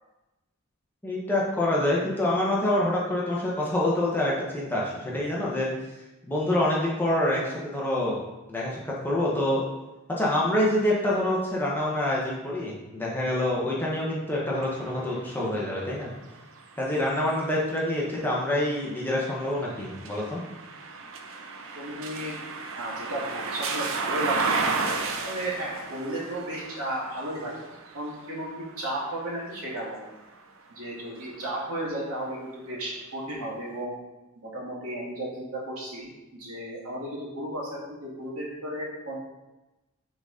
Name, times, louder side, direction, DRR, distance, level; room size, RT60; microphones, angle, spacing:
voice 1, 1.0-5.7 6.3-8.2 8.5-9.6 10.1-16.1 16.8-20.4, left 1 dB, 10° left, -5 dB, 1.1 m, -26 dB
sound 1, 14.5-30.5 31.0-32.3, right 4 dB, 65° right, 0.7 m, -35 dB
voice 2, 21.7-22.4 22.7-25.0 25.2-27.6 27.9-30.1 30.7-33.9 34.4-39.2, right 1 dB, 85° right, -4 dB, 2.2 m, -34 dB
6.0 x 4.0 x 5.1 m, 1.0 s
head